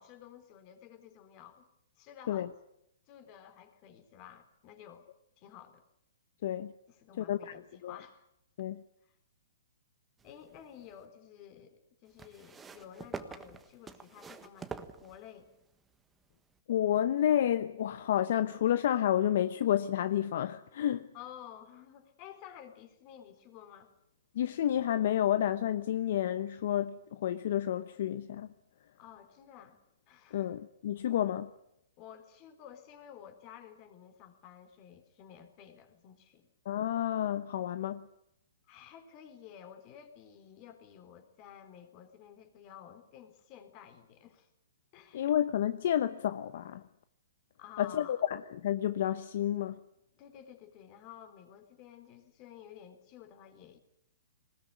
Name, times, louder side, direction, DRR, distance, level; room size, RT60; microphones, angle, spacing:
voice 1, 0.0-1.7 2.0-2.5 3.1-5.0 5.4-5.8 6.9-8.2 9.0-9.1 10.2-15.5 21.1-23.9 29.0-29.8 30.1-30.6 32.0-36.5 38.7-44.5 44.9-45.3 47.6-48.2 50.2-53.8, left 9 dB, 35° left, 3.8 m, -52 dB
voice 2, 6.4-6.7 7.2-8.0 8.6-8.8 16.7-21.1 24.3-28.5 30.3-31.5 36.6-38.1 45.1-46.8 47.8-49.8, left 11 dB, 60° left, 0.9 m, -30 dB
sound 1, 10.2-11.0 12.2-15.6 16.5-16.6, right 5 dB, 10° right, 1.4 m, -46 dB
20.0 x 20.0 x 9.4 m
hypercardioid pair, 140°, 0 cm